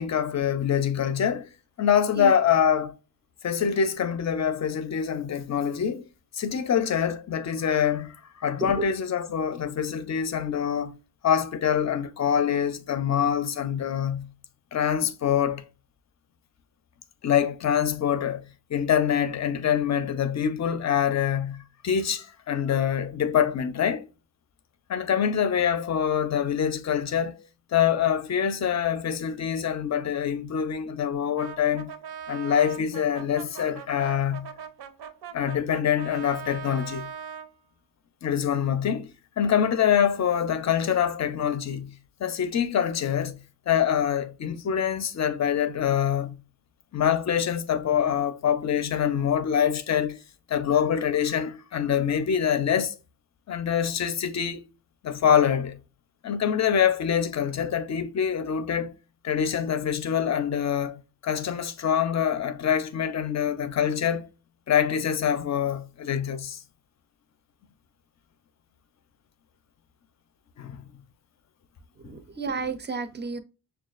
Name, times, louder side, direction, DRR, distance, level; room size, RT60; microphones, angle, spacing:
voice 1, 0.0-1.5 1.8-3.0 3.4-6.0 6.3-11.0 11.2-14.3 14.7-15.6 17.2-24.1 24.9-31.9 32.3-34.5 35.3-37.1 38.2-39.1 39.4-43.4 43.7-46.4 46.9-50.2 50.5-53.0 53.5-54.6 55.0-55.8 56.2-58.9 59.2-64.3 64.7-66.6 70.6-70.8 72.0-72.2, left 8 dB, 45° left, 0.5 m, -25 dB
voice 2, 8.6-8.9 72.0-73.4, right 4 dB, 30° right, 0.4 m, -31 dB
Brass instrument, 31.4-37.5, right 8 dB, 85° right, 0.7 m, -40 dB
6.2 x 2.3 x 2.4 m
wide cardioid pair, 170°, 39 cm